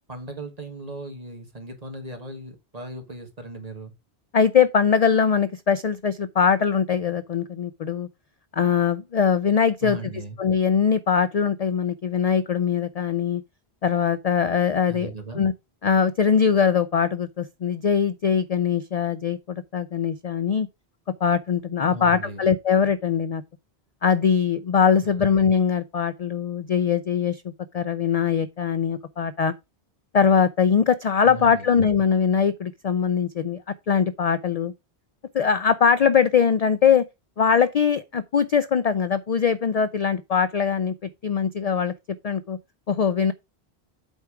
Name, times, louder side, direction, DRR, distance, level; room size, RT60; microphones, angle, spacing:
voice 1, 0.1-3.9 9.8-10.4 14.9-15.4 21.9-22.5 31.2-31.7, right 2 dB, 35° right, 1.8 m, -37 dB
voice 2, 4.3-8.1 8.5-10.0 10.4-13.4 13.8-15.5 15.8-20.7 21.2-23.4 24.0-29.5 30.1-34.7 35.3-37.0 37.4-40.9 41.2-41.9 42.2-42.6 42.9-43.3, left 7 dB, 50° left, 0.4 m, -22 dB
8.1 x 4.6 x 4.8 m
omnidirectional pair, 1.1 m